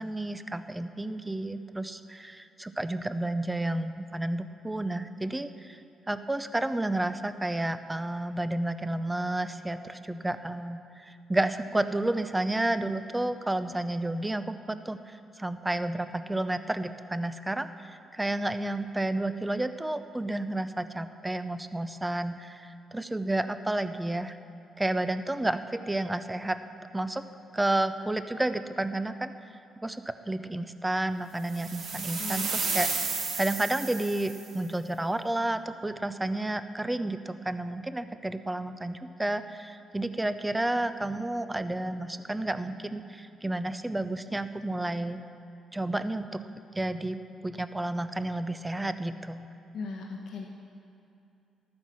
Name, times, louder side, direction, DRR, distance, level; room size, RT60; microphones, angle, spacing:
voice 1, 0.0-5.8 6.1-24.4 24.8-26.6 26.9-27.2 27.5-29.5 29.8-45.2 45.7-46.4 46.7-49.5, right 1 dB, 10° right, 11 dB, 0.6 m, -31 dB
sound 1, 31.5-34.5, right 4 dB, 90° right, 2.1 m, -32 dB
voice 2, 49.7-50.4, left 4 dB, 75° left, -1 dB, 1.2 m, -37 dB
12.5 x 9.6 x 6.2 m, 2.7 s
cardioid pair, 90°, 0 cm